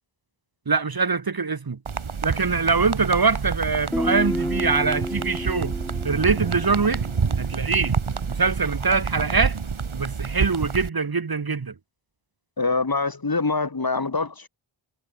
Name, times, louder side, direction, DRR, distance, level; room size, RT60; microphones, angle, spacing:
voice 1, 0.7-1.8 2.2-5.7 6.0-7.1 7.4-8.0 8.3-9.6 9.9-11.7, right 4 dB, 50° right, 1.5 m, -23 dB
sound 1, 1.9-10.9, right 5 dB, 85° right, 2.6 m, -28 dB
Guitar, 3.9-7.6, equal, ahead, 7.3 m, -30 dB
voice 2, 12.6-14.5, left 3 dB, 50° left, 3.1 m, -24 dB
wide cardioid pair, 70°, 47 cm